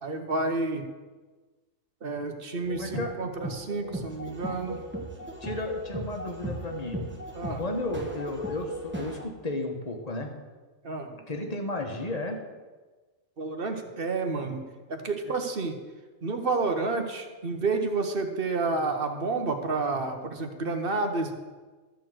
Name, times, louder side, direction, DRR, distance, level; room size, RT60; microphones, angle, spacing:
voice 1, 0.0-0.8 2.0-4.8 7.3-7.6 10.8-11.2 13.4-14.6 14.9-15.8 16.2-21.3, right 3 dB, 45° right, 5 dB, 1.1 m, -30 dB
sound 1, 2.6-9.2, right 1 dB, 10° right, 1.0 m, -37 dB
voice 2, 2.7-3.1 5.4-7.0 7.5-10.3 11.3-12.4 15.2-15.3, left 2 dB, 30° left, 3 dB, 1.3 m, -33 dB
13.0 x 4.6 x 7.7 m, 1.3 s
omnidirectional pair, 1.5 m